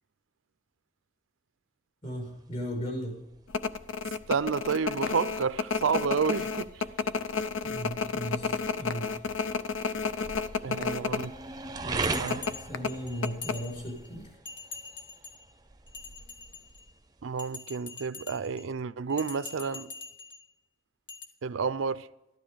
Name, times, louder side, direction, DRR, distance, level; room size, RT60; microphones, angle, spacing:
voice 1, 2.0-3.2 7.6-9.2 10.7-11.1 11.8-14.4, equal, 35° left, 5.7 m, -37 dB
sound 1, 2.0-17.6, right 3 dB, 20° right, 0.5 m, -41 dB
sound 2, 3.5-11.3 11.6-11.7 12.3-14.0 14.2-14.3, left 5 dB, 85° left, 0.6 m, -31 dB
voice 2, 4.3-6.9 10.6-11.3 12.2-12.5 17.2-19.9 21.4-22.1, right 5 dB, 90° right, 0.5 m, -30 dB
Bell, 12.0-14.1 14.4-15.4 15.9-16.9 17.4-18.6 19.1-20.4 21.1-21.2, left 4 dB, 65° left, 1.9 m, -44 dB
13.5 x 12.0 x 5.1 m
head